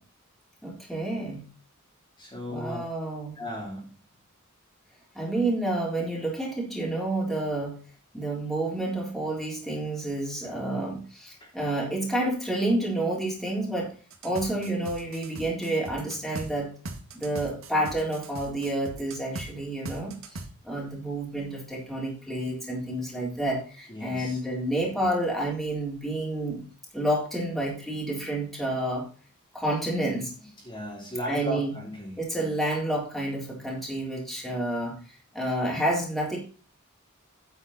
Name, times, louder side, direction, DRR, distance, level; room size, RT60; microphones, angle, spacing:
voice 1, 0.6-1.4 2.5-3.3 5.1-7.7 8.1-13.9 14.2-16.7 17.1-20.1 20.6-26.6 26.9-29.1 29.5-30.3 31.3-31.7 32.2-34.9 35.3-36.4, right 1 dB, ahead, -4 dB, 3.9 m, -29 dB
voice 2, 2.2-2.8 3.4-3.9 10.4-10.6 11.4-11.5 23.9-24.4 30.6-32.2, equal, 20° left, -3 dB, 3.5 m, -36 dB
sound 1, 14.1-16.5 16.8-19.5 19.8-20.5, right 2 dB, 70° right, 2.1 m, -39 dB
9.4 x 8.1 x 4.2 m, 0.37 s
head